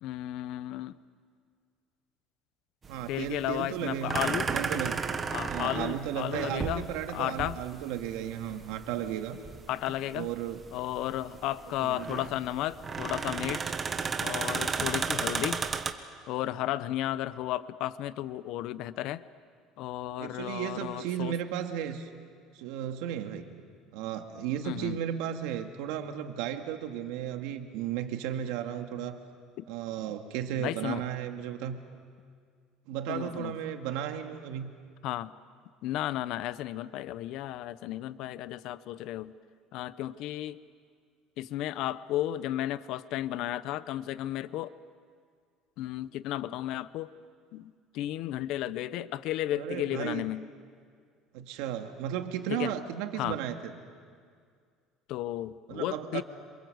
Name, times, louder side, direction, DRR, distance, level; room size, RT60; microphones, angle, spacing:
voice 1, 0.0-1.0 3.1-4.5 5.3-7.6 9.7-10.3 10.7-13.7 14.2-15.6 16.3-19.2 19.8-21.3 24.6-25.0 29.6-29.7 30.6-31.0 33.1-33.5 35.0-35.3 35.8-39.3 39.7-40.6 41.4-44.7 45.8-47.1 47.5-50.5 52.5-52.7 53.2-53.4 55.1-56.2, left 13 dB, 60° left, 15 dB, 0.8 m, -33 dB
sound 1, 2.8-15.9, right 5 dB, 20° right, 1.3 m, -34 dB
voice 2, 2.9-5.0 5.5-9.4 10.1-10.6 11.8-12.2 20.2-22.1 22.5-23.5 23.9-29.2 29.7-31.8 32.9-34.7 49.5-50.3 51.3-53.7 55.7-56.2, right 10 dB, 80° right, 5 dB, 2.2 m, -34 dB
27.5 x 27.0 x 8.0 m, 2.1 s
cardioid pair, 155°, 0 cm